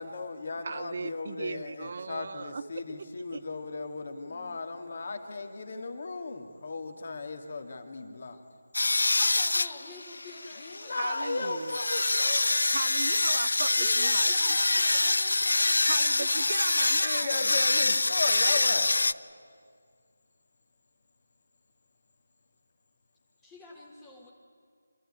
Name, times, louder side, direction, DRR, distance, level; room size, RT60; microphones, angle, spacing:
voice 1, 0.0-8.4 10.6-12.5 17.0-18.9, left 3 dB, 50° left, 4 dB, 2.3 m, -36 dB
voice 2, 0.6-2.6 3.3-3.4 10.9-11.8 12.7-14.3 15.9-17.5, right 4 dB, 45° right, 13 dB, 0.5 m, -37 dB
voice 3, 4.3-4.8 9.2-11.5 13.8-17.3 23.4-24.3, left 2 dB, 10° left, -3 dB, 1.7 m, -47 dB
sound 1, 8.7-19.1, left 2 dB, 70° left, 0.5 m, -26 dB
26.0 x 13.5 x 9.9 m, 2.1 s
figure-of-eight pair, 160°, 0 cm